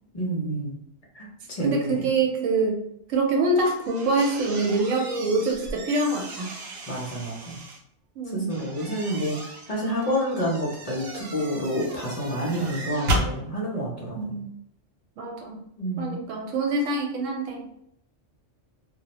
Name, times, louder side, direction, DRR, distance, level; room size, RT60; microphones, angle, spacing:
voice 1, 0.1-0.8 1.1-2.1 6.9-7.6 8.3-9.4 9.7-14.4 15.8-16.1, equal, 45° left, -4 dB, 0.5 m, -29 dB
voice 2, 1.6-2.8 3.1-6.5 8.2-8.6 14.1-14.4 15.2-15.6 16.0-17.6, right 2 dB, 85° right, 1 dB, 1.0 m, -25 dB
sound 1, 3.5-7.8 8.5-13.3, right 1 dB, 60° right, 0.8 m, -34 dB
2.2 x 2.0 x 2.8 m, 0.74 s
omnidirectional pair, 1.3 m